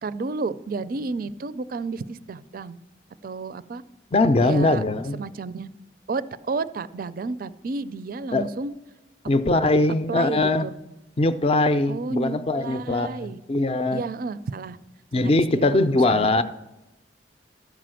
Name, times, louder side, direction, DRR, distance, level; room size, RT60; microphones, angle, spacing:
voice 1, 0.0-2.8 3.2-3.8 4.4-4.8 5.1-5.7 6.1-8.8 10.1-10.7 11.9-13.4 13.9-14.8 15.1-16.3, right 4 dB, 50° right, 0.4 m, -31 dB
voice 2, 4.1-5.2 8.3-8.5 9.3-10.7 11.2-14.0 15.1-16.4, left 2 dB, 35° left, 0.4 m, -21 dB
13.0 x 5.1 x 7.6 m
head